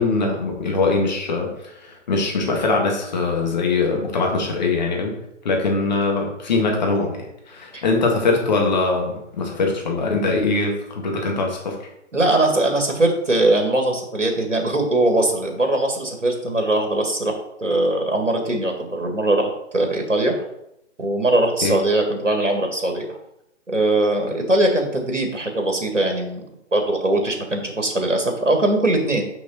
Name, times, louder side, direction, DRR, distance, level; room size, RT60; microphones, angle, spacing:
voice 1, 0.0-5.1 5.4-11.8 21.6-21.8, left 3 dB, 35° left, 1 dB, 1.6 m, -22 dB
voice 2, 12.1-20.4 21.0-23.1 23.7-26.4 26.7-29.2, right 2 dB, 80° right, 3 dB, 1.9 m, -21 dB
6.0 x 5.8 x 4.1 m, 0.79 s
figure-of-eight pair, 140°, 37 cm